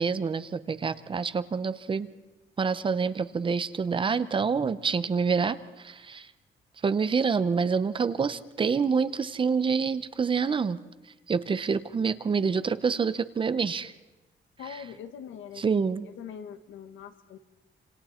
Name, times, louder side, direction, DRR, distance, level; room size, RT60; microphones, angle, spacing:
voice 1, 0.0-2.1 2.6-6.3 6.8-10.8 11.3-13.9 15.6-16.0, right 5 dB, 25° right, 14 dB, 0.7 m, -27 dB
voice 2, 14.6-17.4, left 8 dB, 90° left, 9 dB, 1.7 m, -43 dB
28.0 x 27.5 x 4.3 m, 1.1 s
cardioid pair, 180°, 19 cm